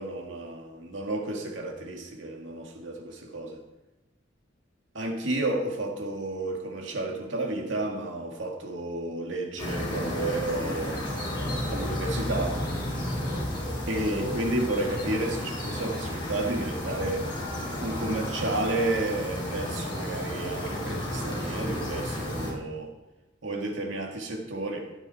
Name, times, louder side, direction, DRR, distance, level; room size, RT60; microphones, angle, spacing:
voice 1, 0.0-3.6 4.9-11.1 11.7-12.6 13.9-17.3 17.8-22.9 23.4-24.9, right 2 dB, 90° right, 2.1 m, -31 dB
sound 1, 9.6-22.5, left 1 dB, 25° left, 4.5 m, -32 dB
16.5 x 9.0 x 4.2 m
head